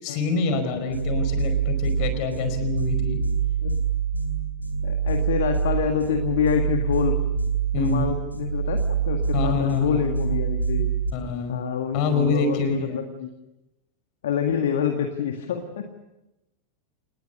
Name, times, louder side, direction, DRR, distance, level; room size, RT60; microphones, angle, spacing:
voice 1, 0.0-3.2 7.7-8.1 9.3-10.0 11.1-11.6 11.9-13.0, left 4 dB, 45° left, 9 dB, 5.0 m, -26 dB
sound 1, 0.9-11.1, right 6 dB, 90° left, 4.0 m, -25 dB
voice 2, 4.8-7.2 7.7-10.9 11.5-13.3 14.2-15.9, left 7 dB, 60° left, 5 dB, 1.9 m, -27 dB
28.5 x 20.0 x 6.8 m, 0.96 s
figure-of-eight pair, 90°, 0 cm